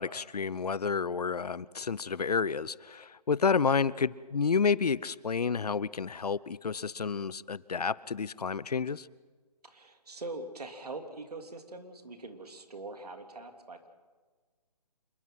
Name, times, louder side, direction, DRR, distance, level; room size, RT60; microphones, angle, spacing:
voice 1, 0.0-9.1, left 5 dB, 70° left, 21 dB, 0.7 m, -30 dB
voice 2, 9.6-13.9, right 2 dB, 70° right, 5 dB, 3.2 m, -43 dB
27.0 x 22.0 x 5.9 m, 1.4 s
figure-of-eight pair, 145°, 21 cm